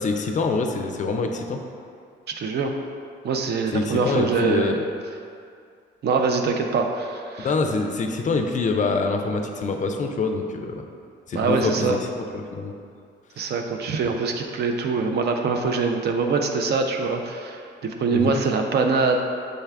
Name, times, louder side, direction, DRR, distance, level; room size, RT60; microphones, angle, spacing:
voice 1, 0.0-1.6 3.7-4.8 7.4-10.8 11.3-12.7 18.1-18.4, left 4 dB, 40° left, 4 dB, 0.4 m, -25 dB
voice 2, 2.4-2.7 3.2-4.8 6.0-7.5 11.3-12.0 13.4-19.2, right 4 dB, 55° right, 4 dB, 0.5 m, -23 dB
6.4 x 2.3 x 3.4 m, 2.3 s
cardioid pair, 90°, 20 cm